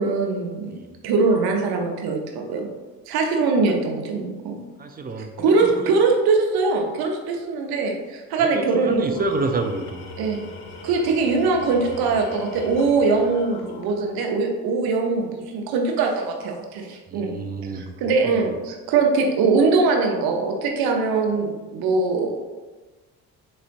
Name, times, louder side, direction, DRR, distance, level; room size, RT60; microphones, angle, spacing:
voice 1, 0.0-0.7 1.0-2.7 3.1-4.6 5.4-9.2 10.2-10.4 10.8-17.3 17.7-22.4, right 4 dB, 70° right, 2 dB, 0.8 m, -22 dB
voice 2, 4.8-5.3 5.6-5.7 8.4-10.0 17.1-17.9, right 3 dB, 25° right, 5 dB, 0.4 m, -28 dB
Tools, 9.0-14.4, left 4 dB, 80° left, 0.6 m, -40 dB
3.8 x 3.2 x 2.5 m, 1.2 s
supercardioid pair, 65°, 38 cm